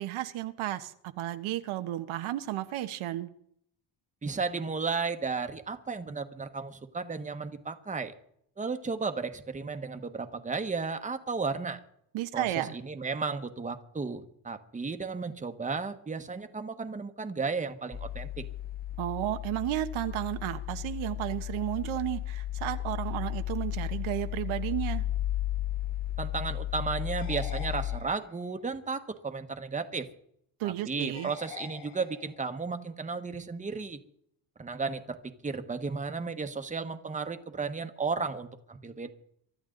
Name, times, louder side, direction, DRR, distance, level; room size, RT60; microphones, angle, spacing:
voice 1, 0.0-3.3 12.1-12.8 19.0-25.0 30.6-31.3, right 14 dB, 85° right, 9 dB, 1.3 m, -33 dB
voice 2, 4.2-8.1 8.6-11.8 12.3-12.5 12.8-18.5 26.2-30.1 30.6-34.0 34.6-35.2 35.4-39.1, right 4 dB, 15° right, 8 dB, 1.2 m, -34 dB
sound 1, 17.9-28.0, left 13 dB, 20° left, 0.9 m, -34 dB
sound 2, 27.1-28.5 31.1-32.5, left 7 dB, 75° left, 2.4 m, -47 dB
24.0 x 12.5 x 3.9 m, 0.67 s
cardioid pair, 125°, 47 cm